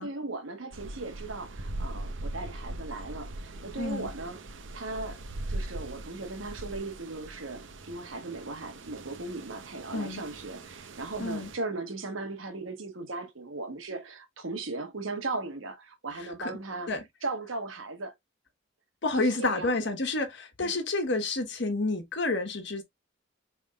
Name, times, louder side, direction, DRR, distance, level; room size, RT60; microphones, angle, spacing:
voice 1, 0.0-4.4 4.7-5.2 5.5-16.9 17.2-18.1 19.1-19.9 20.6-20.8, right 3 dB, 85° right, 1.2 m, -37 dB
sound 1, 0.7-11.6, right 2 dB, 65° right, 0.7 m, -41 dB
voice 2, 3.8-4.1 9.9-10.2 11.2-11.5 16.4-16.5 16.9-17.0 19.0-22.8, left 2 dB, 60° left, 1.2 m, -29 dB
4.9 x 3.5 x 2.3 m
head